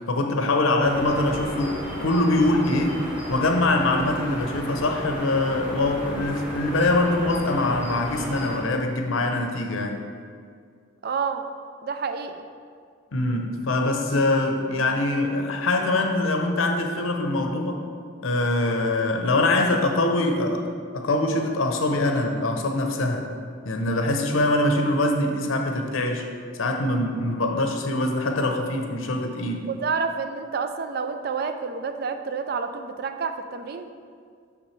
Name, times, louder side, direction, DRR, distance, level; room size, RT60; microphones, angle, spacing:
voice 1, 0.1-3.0 3.3-10.0 13.1-17.8 18.2-20.7 20.9-23.3 23.6-26.3 26.6-29.7, left 2 dB, 90° left, 4 dB, 0.7 m, -23 dB
sound 1, 0.8-8.6, equal, 5° right, 1.7 m, -35 dB
voice 2, 11.0-11.4 11.8-12.4 29.7-33.9, right 5 dB, 50° right, 8 dB, 0.3 m, -29 dB
6.3 x 5.9 x 3.2 m, 2.1 s
head